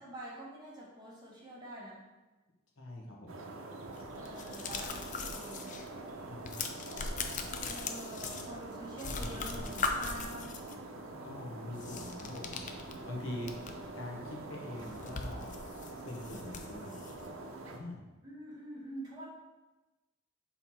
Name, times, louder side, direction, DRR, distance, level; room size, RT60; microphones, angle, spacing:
voice 1, 0.0-2.0 4.1-5.7 7.6-10.5 18.2-19.2, right 1 dB, 20° right, -6 dB, 1.6 m, -46 dB
voice 2, 2.8-3.4 6.3-6.6 7.3-7.4 9.2-9.8 11.2-12.6 13.1-15.5 16.0-17.0 17.7-18.0, left 1 dB, 80° left, -1 dB, 1.3 m, -44 dB
sound 1, 3.3-17.8, right 2 dB, 85° right, 0.7 m, -45 dB
sound 2, 4.0-5.9 6.2-8.7 9.0-10.7 11.7-13.9 14.2-14.3 14.7-17.3, left 4 dB, 40° left, 0.5 m, -40 dB
5.9 x 4.1 x 4.4 m, 1.1 s
head